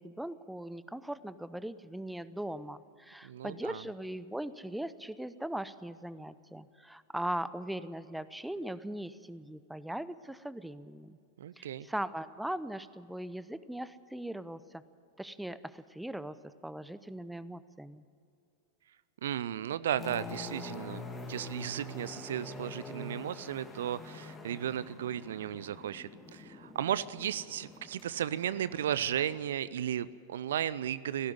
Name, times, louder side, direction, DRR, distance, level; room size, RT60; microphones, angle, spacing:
voice 1, 0.0-11.2 11.6-14.8 15.2-18.0, right 1 dB, 5° right, 15 dB, 0.7 m, -40 dB
voice 2, 3.2-3.8 11.4-11.9 19.2-31.3, right 10 dB, 60° right, 17 dB, 0.5 m, -35 dB
sound 1, 20.0-29.4, left 2 dB, 15° left, 2.5 m, -46 dB
18.0 x 15.5 x 9.6 m, 2.5 s
figure-of-eight pair, 90°, 0 cm